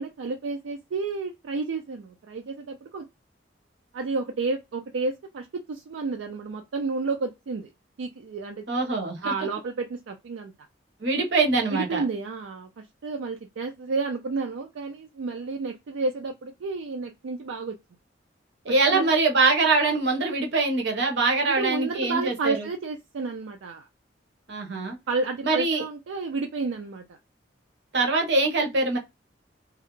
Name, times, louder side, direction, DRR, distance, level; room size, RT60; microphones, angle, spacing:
voice 1, 0.0-3.1 3.9-7.7 8.0-8.6 9.2-10.5 11.7-17.8 18.9-19.1 21.4-23.9 25.1-27.2, right 3 dB, 80° right, 0.4 m, -31 dB
voice 2, 8.7-9.3 11.0-12.0 18.6-22.7 24.5-25.0 25.4-25.8 27.9-29.0, right 3 dB, 65° right, 0.8 m, -23 dB
2.3 x 2.1 x 2.9 m
head